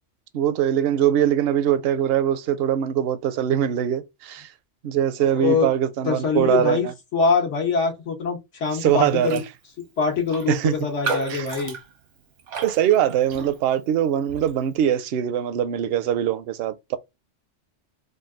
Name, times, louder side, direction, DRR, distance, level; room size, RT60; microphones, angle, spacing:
voice 1, 0.3-4.5 4.8-6.9 8.7-9.4 10.5-10.7 11.3-11.4 12.6-17.0, right 10 dB, 65° right, 0.7 m, -22 dB
voice 2, 5.2-5.7 6.0-9.4 10.0-11.8, left 5 dB, 85° left, 1.6 m, -24 dB
Raindrop, 9.2-9.5 9.8-9.9 10.3-13.8 14.3-14.6, right 4 dB, 80° right, 1.2 m, -33 dB
3.9 x 2.2 x 3.6 m
omnidirectional pair, 1.2 m